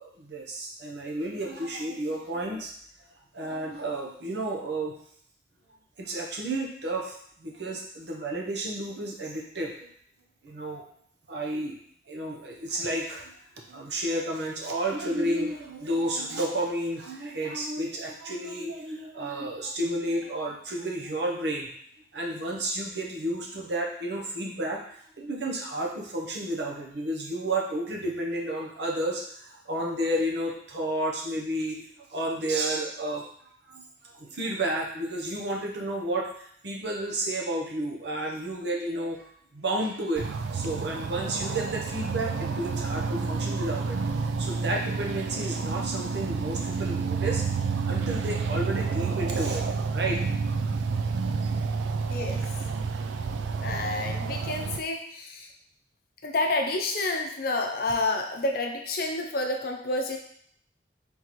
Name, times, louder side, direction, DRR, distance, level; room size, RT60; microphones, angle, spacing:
voice 1, 0.0-2.7 3.3-4.9 6.0-7.1 7.4-9.9 10.4-10.8 11.3-11.8 12.1-13.3 13.7-21.7 22.1-24.8 25.2-31.8 32.1-33.2 33.7-33.8 34.2-36.3 36.6-40.2 40.5-47.4 47.9-49.6 49.9-50.2, right 1 dB, 65° right, -1 dB, 0.9 m, -31 dB
sound 1, 40.2-54.8, right 4 dB, 85° right, 0.4 m, -29 dB
voice 2, 52.0-52.4 53.6-55.5 56.2-60.2, left 2 dB, 50° left, 2 dB, 0.6 m, -29 dB
4.2 x 3.7 x 3.0 m, 0.63 s
head